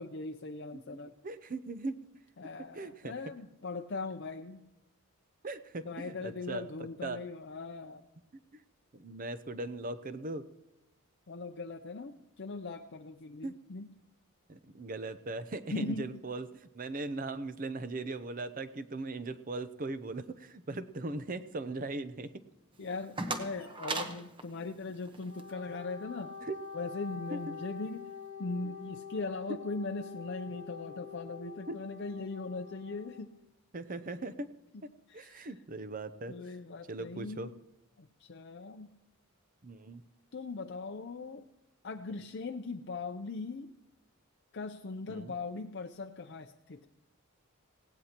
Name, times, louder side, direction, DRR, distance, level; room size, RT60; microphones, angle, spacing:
voice 1, 0.0-1.1 2.4-4.6 5.8-8.0 11.3-13.9 15.7-16.1 22.8-26.3 26.7-28.1 28.4-33.3 35.1-35.6 36.3-37.5 38.0-38.9 40.3-41.5 41.8-43.7 44.5-46.9, left 3 dB, 50° left, 5 dB, 0.6 m, -40 dB
voice 2, 1.2-2.0 2.7-3.1 5.4-6.7 7.0-7.2 8.5-8.6 8.9-10.5 13.4-13.5 14.5-22.4 26.5-26.6 27.3-27.4 29.5-29.6 31.7-31.8 33.7-34.5 34.8-36.3 36.9-37.5 39.6-40.0 45.1-45.3, right 2 dB, 40° right, 12 dB, 0.6 m, -39 dB
sound 1, 22.7-25.5, right 3 dB, 20° right, 1.0 m, -39 dB
Wind instrument woodwind instrument, 25.2-33.2, left 6 dB, 65° right, 4.3 m, -46 dB
19.0 x 17.0 x 2.9 m, 0.93 s
head